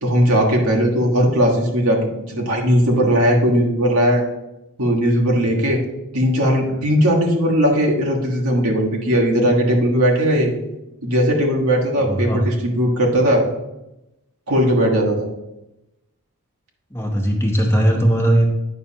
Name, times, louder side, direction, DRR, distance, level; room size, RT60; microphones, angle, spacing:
voice 1, 0.0-2.0 2.3-4.2 4.8-5.8 6.1-10.5 11.0-13.4 14.5-15.3, equal, 80° right, -1 dB, 1.4 m, -18 dB
voice 2, 12.1-12.4 16.9-18.5, right 1 dB, 10° left, 1 dB, 1.0 m, -18 dB
9.3 x 5.7 x 2.8 m, 0.94 s
head